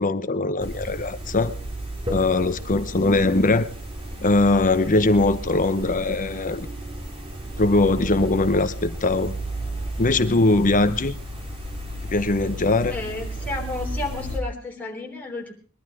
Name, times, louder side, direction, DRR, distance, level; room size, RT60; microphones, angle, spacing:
voice 1, 0.0-1.5 2.1-3.7 4.2-6.7 7.6-9.4 10.0-11.1 12.1-12.9, left 2 dB, 35° left, 12 dB, 0.9 m, -21 dB
sound 1, 0.6-14.4, right 1 dB, 25° right, 3.5 m, -33 dB
voice 2, 12.9-15.5, left 2 dB, 5° left, -1 dB, 3.4 m, -32 dB
21.5 x 11.5 x 4.9 m, 0.40 s
head